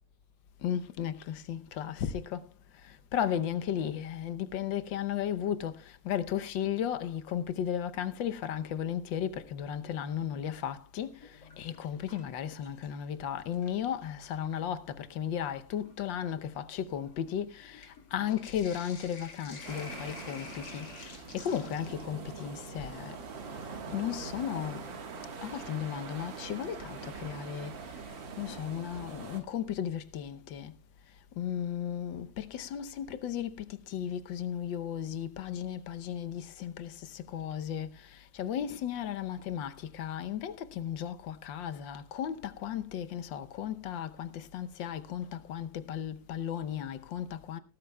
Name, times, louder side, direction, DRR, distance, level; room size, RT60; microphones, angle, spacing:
voice 1, 0.6-2.5 3.1-11.1 11.6-23.1 23.9-24.8 25.4-27.7 28.4-30.7 31.4-38.0 38.3-47.6, left 9 dB, 80° left, 1.6 m, -35 dB
Sink (filling or washing), 11.0-13.1 13.4-14.2 15.0-15.1 15.4-24.5 26.3-26.4 28.2-28.6 29.0-29.1 29.3-29.4, left 4 dB, 60° left, 2.5 m, -50 dB
sound 1, 19.6-29.4, right 5 dB, 85° right, 2.3 m, -43 dB
18.0 x 12.5 x 2.3 m
omnidirectional pair, 2.0 m